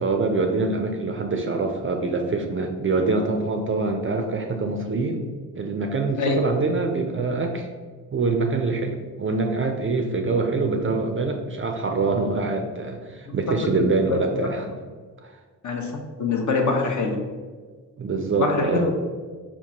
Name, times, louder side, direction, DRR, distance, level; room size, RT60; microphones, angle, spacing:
voice 1, 0.0-5.3 5.6-7.7 8.1-14.7 15.2-15.3 18.0-18.9, right 3 dB, 30° right, 4 dB, 0.4 m, -25 dB
voice 2, 6.2-6.5 13.6-14.5 15.6-15.9 16.2-17.2 18.4-18.9, left 3 dB, 45° left, 3 dB, 0.7 m, -24 dB
3.6 x 2.4 x 2.9 m, 1.5 s
supercardioid pair, 45°, 42 cm